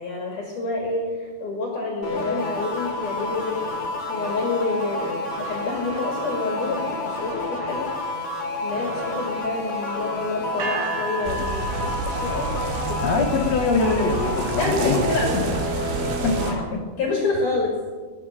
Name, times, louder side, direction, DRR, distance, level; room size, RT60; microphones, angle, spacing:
voice 1, 0.0-3.6 4.1-7.9 8.6-12.5 12.9-13.2 14.6-15.5 16.9-17.8, left 3 dB, 50° left, 0 dB, 3.3 m, -27 dB
sound 1, 2.0-16.7, left 2 dB, 35° left, 3.3 m, -29 dB
sound 2, 10.6-12.7, right 6 dB, 60° right, 4.7 m, -33 dB
sound 3, 11.2-16.5, right 4 dB, 80° right, 3.8 m, -30 dB
voice 2, 13.0-15.0 16.2-16.8, left 4 dB, 80° left, 1 dB, 1.5 m, -23 dB
19.5 x 11.0 x 6.5 m, 1.4 s
omnidirectional pair, 5.2 m